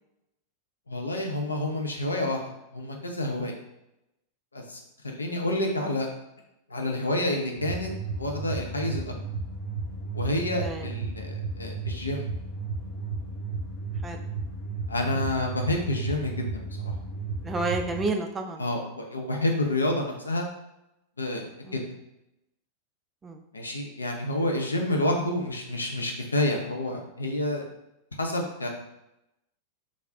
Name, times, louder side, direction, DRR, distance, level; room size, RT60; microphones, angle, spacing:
voice 1, 0.9-2.4 2.7-3.5 4.5-6.1 6.7-7.9 8.2-9.1 10.1-12.3 14.9-16.6 18.6-20.5 21.2-21.8 23.5-27.6 28.2-28.7, left 1 dB, 80° left, 2 dB, 0.4 m, -29 dB
sound 1, 7.6-18.0, right 3 dB, 55° left, 0.8 m, -34 dB
voice 2, 17.4-18.6 21.6-21.8 23.2-23.4, right 3 dB, 20° right, 3 dB, 0.3 m, -30 dB
2.3 x 2.0 x 3.4 m, 0.89 s
figure-of-eight pair, 90°, 0 cm